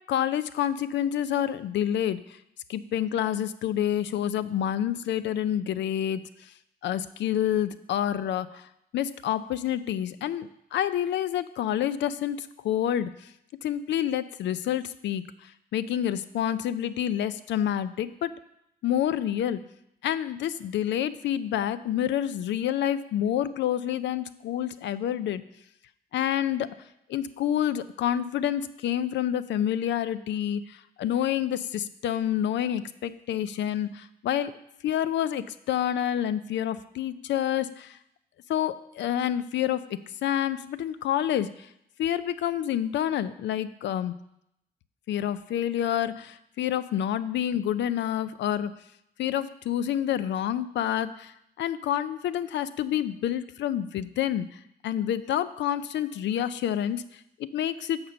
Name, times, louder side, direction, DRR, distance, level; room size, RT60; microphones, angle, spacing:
voice 1, 0.1-2.4 2.7-6.5 6.8-13.3 13.6-18.3 18.8-19.6 20.0-25.4 26.1-26.7 27.1-34.5 34.8-38.0 38.5-41.7 42.0-44.1 45.1-48.7 49.2-58.0, left 10 dB, 80° left, 14 dB, 0.4 m, -28 dB
6.7 x 4.4 x 6.6 m, 0.79 s
cardioid pair, 65°, 18 cm